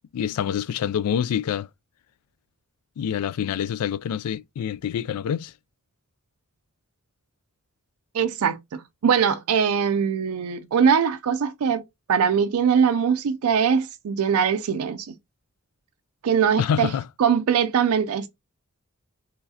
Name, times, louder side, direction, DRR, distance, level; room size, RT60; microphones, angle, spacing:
voice 1, 0.1-1.7 3.0-5.5 16.6-17.1, left 8 dB, 85° left, 0.3 m, -26 dB
voice 2, 8.1-11.8 12.1-15.1 16.2-16.9 17.2-18.3, right 7 dB, 75° right, 0.4 m, -22 dB
4.7 x 3.2 x 2.7 m
head